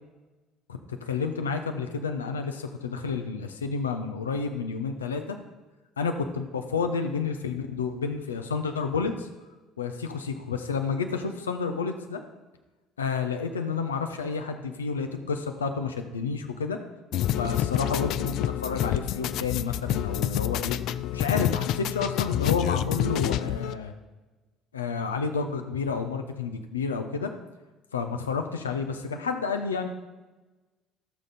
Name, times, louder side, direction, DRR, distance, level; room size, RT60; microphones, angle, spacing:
voice 1, 0.7-5.4 6.0-9.3 9.8-12.2 13.0-16.8 17.3-20.8 21.1-23.9 24.7-27.3 27.9-29.9, left 5 dB, 80° left, 6 dB, 0.8 m, -30 dB
sound 1, 17.1-23.7, left 12 dB, 55° left, 0.3 m, -28 dB
16.5 x 6.7 x 4.2 m, 1.2 s
figure-of-eight pair, 55°, 0 cm